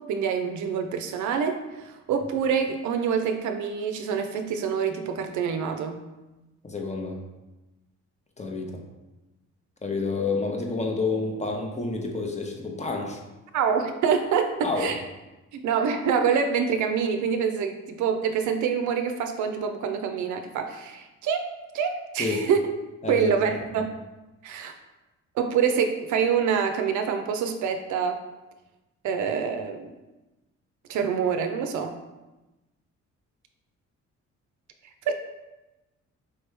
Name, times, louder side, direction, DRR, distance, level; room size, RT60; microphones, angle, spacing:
voice 1, 0.1-6.0 13.5-15.0 15.5-21.5 21.7-22.6 23.1-23.9 24.4-24.7 25.4-28.2 29.0-29.9 30.9-31.9 35.1-35.2, right 6 dB, 75° right, 6 dB, 0.5 m, -26 dB
voice 2, 6.6-7.2 8.4-8.8 9.8-13.2 14.6-14.9 22.2-22.4 23.0-23.3, left 3 dB, 25° left, 1 dB, 0.8 m, -29 dB
4.7 x 3.0 x 3.3 m, 1.1 s
cardioid pair, 90°, 30 cm